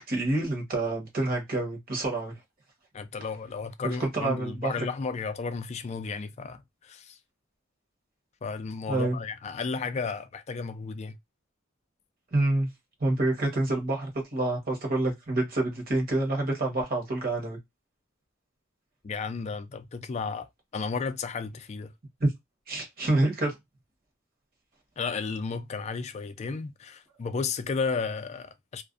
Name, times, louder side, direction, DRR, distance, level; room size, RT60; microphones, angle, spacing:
voice 1, 0.1-2.4 3.8-4.7 8.9-9.2 12.3-12.7 13.0-17.6 22.2-22.3 22.7-23.5, right 2 dB, 45° right, 1.0 m, -27 dB
voice 2, 2.9-7.2 8.4-11.2 19.0-20.5 20.7-21.9 25.0-28.8, left 5 dB, 35° left, 0.3 m, -33 dB
2.4 x 2.2 x 2.4 m
head